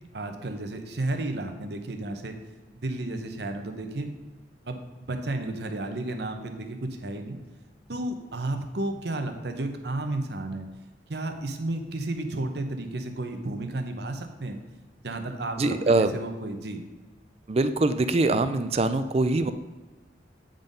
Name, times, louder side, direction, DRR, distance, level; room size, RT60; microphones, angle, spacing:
voice 1, 0.1-2.3 2.7-4.1 4.6-7.4 7.9-10.7 11.1-14.6 15.0-16.8, right 2 dB, 60° right, 6 dB, 0.8 m, -32 dB
voice 2, 15.6-16.1 17.5-19.5, right 2 dB, 35° right, 10 dB, 0.4 m, -23 dB
9.0 x 3.8 x 5.2 m, 1.2 s
head